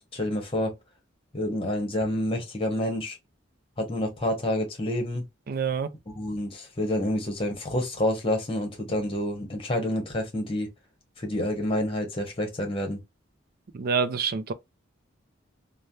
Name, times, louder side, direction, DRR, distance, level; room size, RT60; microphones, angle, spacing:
voice 1, 0.1-0.7 1.3-3.2 3.8-5.3 6.1-10.7 11.2-13.0, left 1 dB, 30° left, 1.1 m, -28 dB
voice 2, 5.5-5.9 13.7-14.5, right 5 dB, 50° right, 0.4 m, -27 dB
3.2 x 2.2 x 2.6 m
head